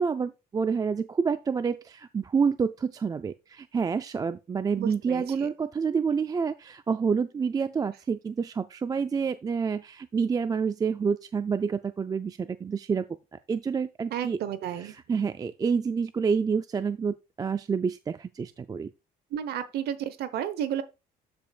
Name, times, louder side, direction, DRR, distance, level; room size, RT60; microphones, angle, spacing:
voice 1, 0.0-13.1 13.5-14.4 14.8-18.9, right 5 dB, 20° right, 0.3 m, -28 dB
voice 2, 4.8-5.5 14.1-14.9 19.3-20.8, right 10 dB, 70° right, 0.9 m, -32 dB
14.0 x 5.1 x 2.3 m
cardioid pair, 110°, 17 cm